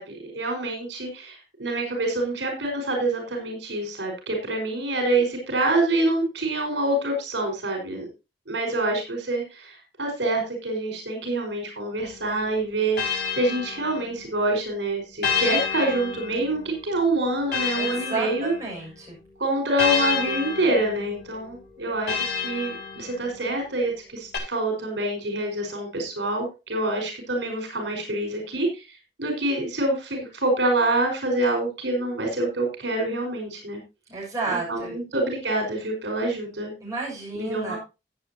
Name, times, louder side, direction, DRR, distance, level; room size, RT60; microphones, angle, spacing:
voice 1, 0.0-8.1 8.5-18.5 19.4-28.9 29.2-33.8 34.5-36.7 37.4-37.8, right 2 dB, 85° right, 3 dB, 5.3 m, -26 dB
sound 1, 12.0-14.4 15.2-19.0 19.8-23.5 24.3-24.4, left 6 dB, 60° left, 5.0 m, -30 dB
voice 2, 17.8-19.2 34.1-34.9 36.8-37.8, right 3 dB, 20° right, -4 dB, 6.8 m, -31 dB
16.5 x 8.7 x 2.9 m, 0.27 s
head